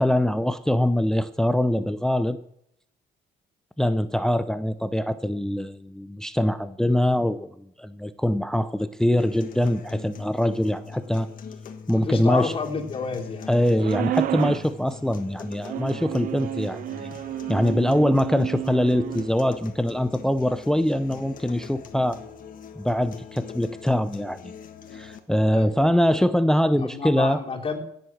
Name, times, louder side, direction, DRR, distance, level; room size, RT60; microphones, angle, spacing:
voice 1, 0.0-2.4 3.8-11.3 11.9-12.5 13.5-17.1 17.5-22.2 22.8-24.5 24.9-27.4, left 1 dB, 5° left, 12 dB, 0.6 m, -23 dB
sound 1, 9.2-25.2, left 6 dB, 55° left, 1.6 m, -42 dB
voice 2, 11.9-13.5 25.4-25.8 26.8-27.8, left 4 dB, 30° left, -1 dB, 3.4 m, -30 dB
sound 2, 13.8-14.7 15.6-19.3, right 13 dB, 55° right, 0.4 m, -31 dB
17.0 x 7.9 x 6.2 m, 0.72 s
cardioid pair, 110°, 17 cm